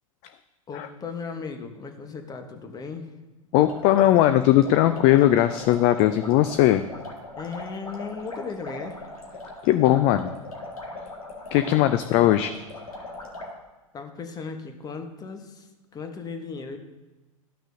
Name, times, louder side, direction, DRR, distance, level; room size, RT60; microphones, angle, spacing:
voice 1, 0.7-3.1 7.4-9.0 12.1-12.4 13.9-16.8, left 5 dB, 20° left, 6 dB, 1.0 m, -36 dB
voice 2, 3.5-6.8 9.6-10.3 11.5-12.5, left 13 dB, 35° left, 10 dB, 0.4 m, -19 dB
sound 1, 3.6-13.5, left 2 dB, 80° left, 1.7 m, -40 dB
13.0 x 6.1 x 2.6 m, 1.1 s
figure-of-eight pair, 95°, 18 cm